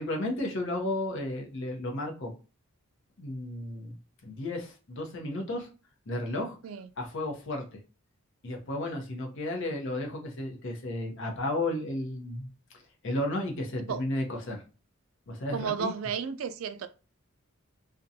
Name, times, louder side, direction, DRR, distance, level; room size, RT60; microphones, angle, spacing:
voice 1, 0.0-2.3 3.2-3.9 4.2-5.7 6.1-6.6 7.0-7.7 8.4-12.5 13.0-14.6 15.3-15.9, left 1 dB, 65° left, 0.7 m, -33 dB
voice 2, 15.5-16.9, right 7 dB, 75° right, 0.3 m, -33 dB
2.5 x 2.2 x 2.7 m
head